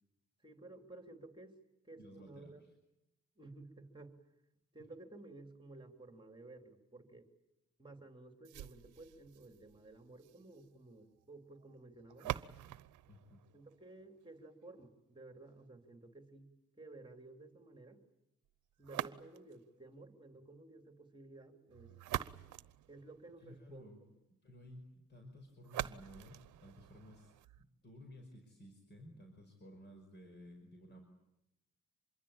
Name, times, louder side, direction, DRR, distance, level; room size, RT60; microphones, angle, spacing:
voice 1, 0.4-1.5 1.8-2.6 3.4-4.2 4.7-7.3 7.8-12.4 13.5-16.5 16.8-18.0 18.8-21.9 22.9-23.9, right 2 dB, 15° right, 5 dB, 3.3 m, -54 dB
voice 2, 1.9-2.7 13.1-13.4 23.4-24.0 24.4-27.3 27.6-31.0, equal, 35° left, 4 dB, 5.5 m, -55 dB
sound 1, 8.4-14.4 18.8-19.7 21.7-23.6 25.6-27.6, right 14 dB, 80° right, 0.9 m, -45 dB
26.0 x 22.5 x 8.8 m, 0.91 s
cardioid pair, 90°, 30 cm